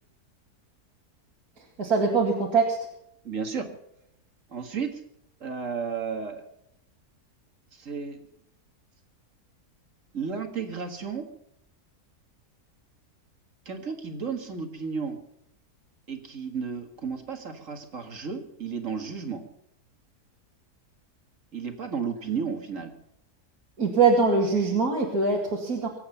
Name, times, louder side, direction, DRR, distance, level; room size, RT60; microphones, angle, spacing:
voice 1, 1.8-2.8 23.8-25.9, right 4 dB, 70° right, -1 dB, 2.6 m, -22 dB
voice 2, 3.2-3.7 4.5-5.0 5.4-6.4 7.7-8.2 10.1-11.2 13.7-15.2 16.1-19.4 21.5-22.9, right 6 dB, 55° right, 6 dB, 2.1 m, -33 dB
23.5 x 8.6 x 5.6 m, 0.77 s
omnidirectional pair, 1.7 m